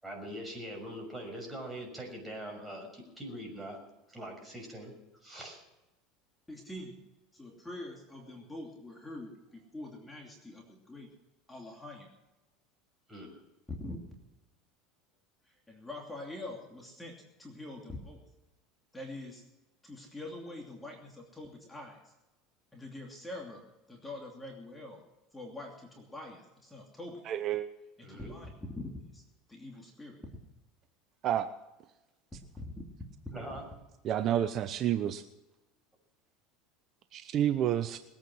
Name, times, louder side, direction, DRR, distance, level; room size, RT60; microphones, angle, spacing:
voice 1, 0.0-3.8 4.1-4.9 5.2-5.6 13.1-13.4 28.0-28.3 33.3-33.6, right 1 dB, 5° right, 0 dB, 6.3 m, -42 dB
voice 2, 6.5-7.0 7.3-11.1 11.5-12.1 13.8-14.0 15.5-18.2 18.9-19.4 19.8-22.1 22.7-25.0 25.3-27.2 28.0-28.5 28.8-29.2 29.5-30.2 32.6-32.7, left 1 dB, 10° left, 0 dB, 2.8 m, -44 dB
voice 3, 27.2-27.7 31.2-31.5 34.0-35.2 37.1-38.0, right 11 dB, 45° right, 11 dB, 0.7 m, -29 dB
21.0 x 9.1 x 6.3 m, 1.0 s
supercardioid pair, 115°, 0 cm